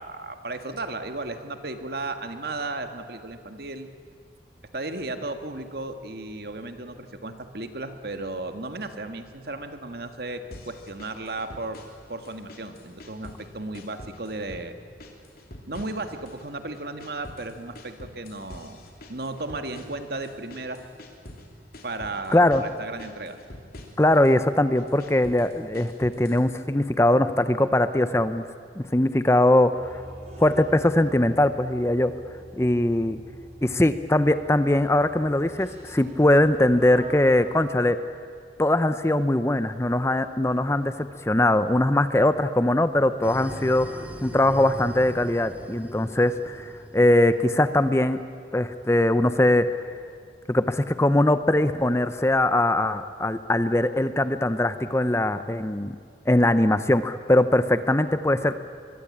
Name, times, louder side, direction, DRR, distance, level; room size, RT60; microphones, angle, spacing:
voice 1, 0.0-3.9 4.7-11.8 12.1-14.8 15.7-18.8 19.1-20.8 21.8-23.4, right 2 dB, 55° right, 7 dB, 1.8 m, -35 dB
sound 1, 10.5-12.0 12.3-13.5 13.7-14.7 15.0-16.5 16.7-21.5 21.7-22.7 23.0-24.4 24.8-26.5, left 1 dB, 55° left, 3.2 m, -45 dB
voice 2, 22.3-22.6 24.0-28.4 28.8-30.0 30.4-32.1 32.6-33.2 33.6-38.0 38.6-48.2 48.5-49.7 50.5-56.0 56.3-58.5, left 1 dB, 15° left, 12 dB, 0.6 m, -21 dB
sound 2, 29.7-37.8, right 1 dB, 35° right, 6.2 m, -44 dB
sound 3, 43.2-48.1, equal, 10° right, 1.9 m, -40 dB
24.5 x 22.0 x 8.6 m, 2.2 s
head